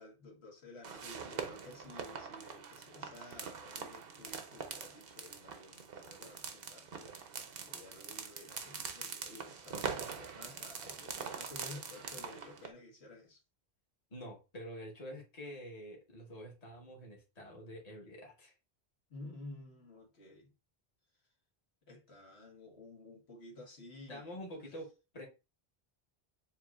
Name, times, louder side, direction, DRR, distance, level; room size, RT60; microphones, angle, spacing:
voice 1, 0.0-7.3 7.7-13.4 19.1-20.5 21.9-24.4, left 2 dB, 75° left, 1.4 m, -52 dB
sound 1, 0.8-12.7, right 6 dB, 65° right, 0.9 m, -44 dB
voice 2, 14.1-18.5 24.1-25.3, equal, 40° left, 1.4 m, -47 dB
7.3 x 2.5 x 2.4 m
omnidirectional pair, 1.1 m